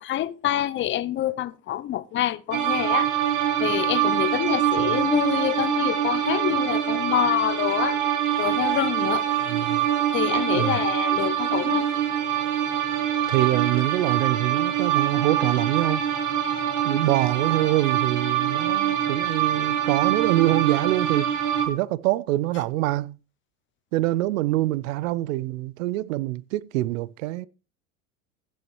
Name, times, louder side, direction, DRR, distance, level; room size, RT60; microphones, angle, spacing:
voice 1, 0.0-3.1 3.6-8.0 8.4-9.2 10.1-11.9, left 13 dB, 30° left, 0.6 m, -26 dB
sound 1, 2.5-21.7, right 10 dB, 45° right, 1.9 m, -24 dB
voice 2, 9.5-9.9 10.5-10.8 13.3-16.0 16.8-21.3 21.7-23.2 23.9-27.5, right 17 dB, 70° right, 0.6 m, -25 dB
15.5 x 6.3 x 3.1 m
hypercardioid pair, 85°, 42 cm